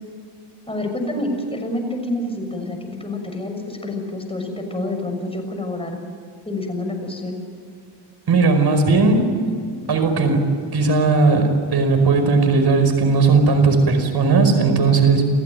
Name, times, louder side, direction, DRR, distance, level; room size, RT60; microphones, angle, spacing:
voice 1, 0.7-6.0 6.4-7.4, left 1 dB, 10° left, 3 dB, 6.4 m, -27 dB
voice 2, 8.3-9.3 9.9-15.3, right 4 dB, 55° right, 7 dB, 5.1 m, -17 dB
28.5 x 15.0 x 9.2 m, 2.3 s
cardioid pair, 95°, 45 cm